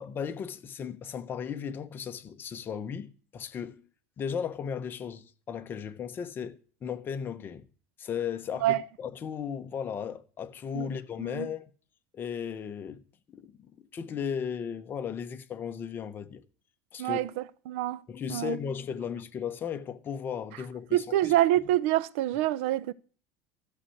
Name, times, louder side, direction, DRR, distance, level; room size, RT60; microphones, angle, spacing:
voice 1, 0.0-3.8 4.2-7.6 8.0-11.7 12.1-13.0 13.3-16.4 16.9-17.2 18.1-21.3, left 7 dB, 35° left, 1.2 m, -36 dB
voice 2, 10.7-11.5 17.0-18.0 18.3-18.6 20.9-22.9, right 14 dB, 90° right, 0.6 m, -27 dB
13.5 x 5.7 x 7.9 m
cardioid pair, 130°, 6 cm